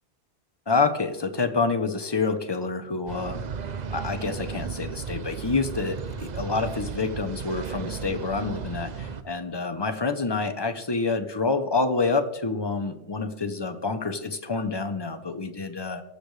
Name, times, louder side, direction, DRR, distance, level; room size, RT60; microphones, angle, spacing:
voice 1, 0.7-3.4 3.9-16.0, left 4 dB, 25° left, 9 dB, 0.6 m, -27 dB
sound 1, 3.1-9.2, right 6 dB, 50° right, 0.6 m, -35 dB
19.5 x 6.8 x 3.2 m, 0.96 s
omnidirectional pair, 1.2 m